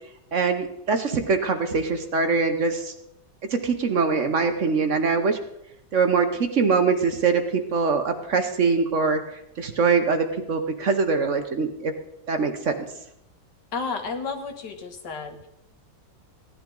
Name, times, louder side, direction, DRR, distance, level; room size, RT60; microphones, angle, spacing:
voice 1, 0.3-2.9 3.5-5.4 5.9-9.2 9.6-11.9 12.3-12.8, right 4 dB, 50° right, 6 dB, 1.2 m, -23 dB
voice 2, 13.7-15.5, left 4 dB, 80° left, 5 dB, 2.1 m, -32 dB
16.5 x 11.5 x 3.8 m, 0.80 s
omnidirectional pair, 1.8 m